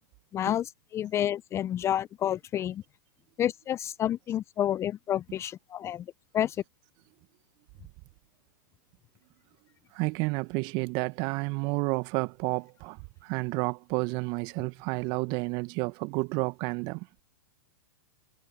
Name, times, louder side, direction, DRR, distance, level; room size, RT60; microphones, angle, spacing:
voice 1, 0.3-2.8 3.4-6.1 6.3-6.6, left 11 dB, 25° left, 0.8 m, -29 dB
voice 2, 9.9-17.1, right 28 dB, 40° right, 1.7 m, -31 dB
figure-of-eight pair, 105°, 11 cm